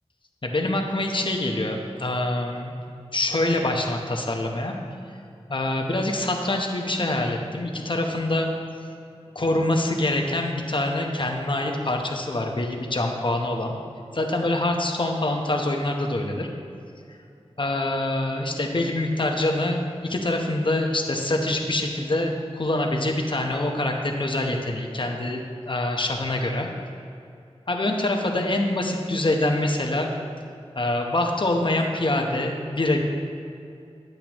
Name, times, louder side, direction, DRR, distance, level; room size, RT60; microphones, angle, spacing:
voice 1, 0.4-2.7 3.1-4.7 5.5-8.5 9.3-13.7 14.1-16.5 17.6-26.7 27.7-30.1 30.7-33.0, left 1 dB, 50° left, 1 dB, 1.0 m, -25 dB
10.5 x 7.9 x 3.0 m, 2.5 s
wide cardioid pair, 50°, 11 cm